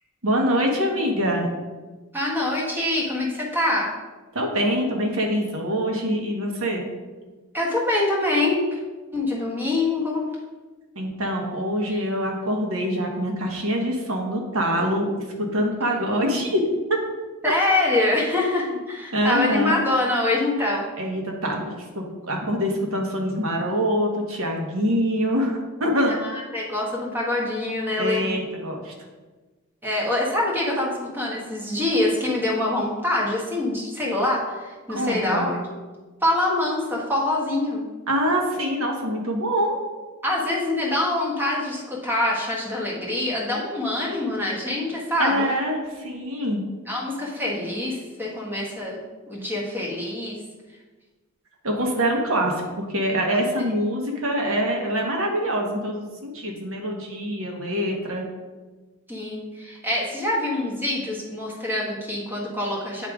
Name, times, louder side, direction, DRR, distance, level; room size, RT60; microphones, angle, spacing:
voice 1, 0.2-1.5 4.3-6.8 10.9-15.1 15.4-16.6 19.1-19.8 21.0-26.1 28.0-28.9 34.9-35.5 38.1-39.8 45.2-46.6 51.6-58.2, equal, 70° right, 1 dB, 1.2 m, -24 dB
voice 2, 2.1-3.9 7.5-8.8 9.1-10.2 11.9-12.0 17.4-20.9 26.0-28.3 29.8-35.6 36.2-37.8 40.2-45.5 46.9-49.0 49.3-50.4 59.1-63.1, left 2 dB, 10° right, -3 dB, 1.3 m, -25 dB
8.8 x 3.6 x 4.9 m, 1.3 s
head